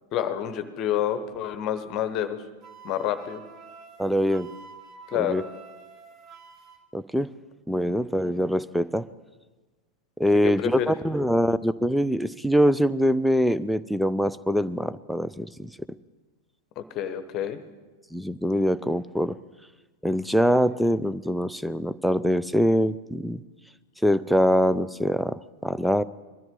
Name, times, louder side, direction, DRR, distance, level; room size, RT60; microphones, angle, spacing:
voice 1, 0.1-2.4 2.8-3.4 5.1-5.4 10.4-10.9 16.8-17.6, left 10 dB, 35° left, 10 dB, 1.0 m, -28 dB
Wind instrument woodwind instrument, 2.6-6.8, right 5 dB, 30° right, 1.4 m, -47 dB
voice 2, 4.0-4.5 5.1-5.4 6.9-7.3 7.7-9.1 10.2-15.7 18.1-19.3 20.0-23.4 24.0-26.0, equal, ahead, 16 dB, 0.4 m, -23 dB
22.0 x 13.5 x 3.7 m, 1.3 s
figure-of-eight pair, 90°, 0 cm